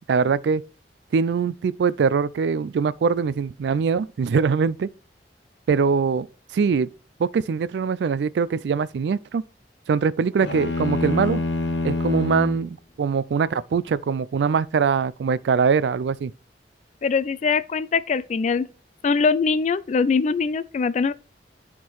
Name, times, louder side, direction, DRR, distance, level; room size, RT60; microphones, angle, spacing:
voice 1, 0.1-0.6 1.1-4.9 5.7-6.3 6.5-6.9 7.2-9.4 9.9-11.4 11.8-16.3, right 5 dB, 70° right, 0.3 m, -22 dB
sound 1, 10.4-12.7, left 2 dB, 85° left, 1.2 m, -26 dB
voice 2, 17.0-18.7 19.0-21.1, left 5 dB, 40° left, 0.3 m, -22 dB
10.0 x 3.7 x 4.6 m
head